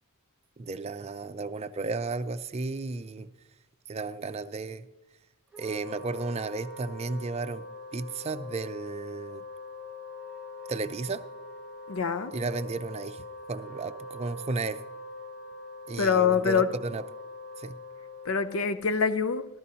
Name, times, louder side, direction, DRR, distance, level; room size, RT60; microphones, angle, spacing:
voice 1, 0.6-3.3 3.9-4.8 5.6-7.6 7.9-9.4 10.7-11.2 12.3-14.8 15.9-17.0 17.6-17.8, right 3 dB, 30° right, 0.4 m, -34 dB
Wind instrument woodwind instrument, 5.5-18.9, left 2 dB, 5° right, 0.8 m, -43 dB
voice 2, 11.9-12.3 16.0-16.7 18.3-19.5, left 6 dB, 80° left, 0.6 m, -25 dB
15.0 x 12.5 x 2.8 m
head